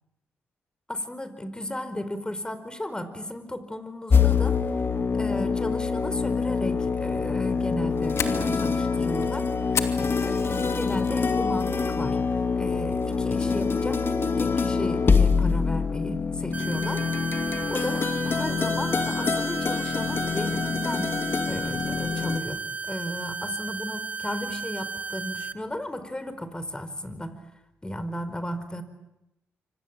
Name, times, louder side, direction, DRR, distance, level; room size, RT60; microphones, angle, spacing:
voice 1, 0.9-4.6 5.1-12.2 12.5-14.1 14.4-17.1 17.7-21.1 21.5-27.4 27.8-28.8, left 1 dB, 15° left, 12 dB, 4.8 m, -34 dB
sound 1, 4.1-22.4, left 5 dB, 45° left, 2.6 m, -25 dB
Fire, 7.6-11.1 11.5-11.9 12.3-12.4 13.0-13.3, left 7 dB, 65° left, 2.8 m, -33 dB
sound 2, 16.5-25.5, right 4 dB, 30° right, 1.6 m, -34 dB
26.0 x 25.5 x 8.9 m, 0.90 s
supercardioid pair, 55°, 5 cm